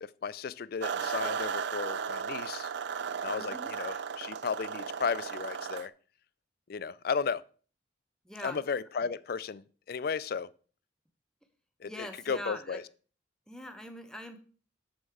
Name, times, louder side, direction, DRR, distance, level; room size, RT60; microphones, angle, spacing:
voice 1, 0.0-2.7 3.2-5.9 6.7-7.4 8.4-10.5 11.8-12.8, left 5 dB, 50° left, 0.4 m, -34 dB
sound 1, 0.8-5.9, right 6 dB, 60° right, 0.4 m, -35 dB
voice 2, 3.3-3.7 8.2-8.6 11.9-12.8 13.5-14.4, equal, 5° left, 0.9 m, -42 dB
6.7 x 6.3 x 4.8 m
head